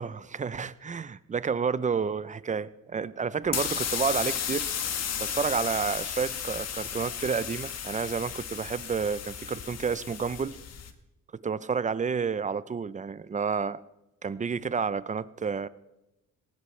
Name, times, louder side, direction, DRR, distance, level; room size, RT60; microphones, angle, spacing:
voice 1, 0.0-4.7 5.2-10.6 11.4-13.8 14.2-15.7, right 6 dB, 25° right, 17 dB, 0.6 m, -30 dB
sound 1, 3.4-10.9, left 8 dB, 60° left, 1.3 m, -34 dB
19.0 x 17.5 x 3.3 m, 0.93 s
cardioid pair, 90°, 30 cm